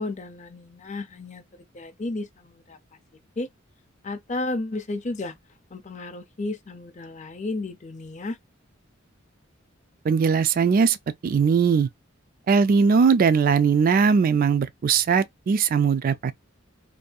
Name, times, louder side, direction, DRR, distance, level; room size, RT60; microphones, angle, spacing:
voice 1, 0.0-1.4 1.7-2.8 3.4-3.5 4.0-5.3 5.7-8.4, left 2 dB, 35° left, 0.5 m, -32 dB
voice 2, 10.0-11.0 11.2-11.9 12.5-16.3, right 5 dB, 45° right, 0.3 m, -20 dB
2.6 x 2.6 x 2.2 m
head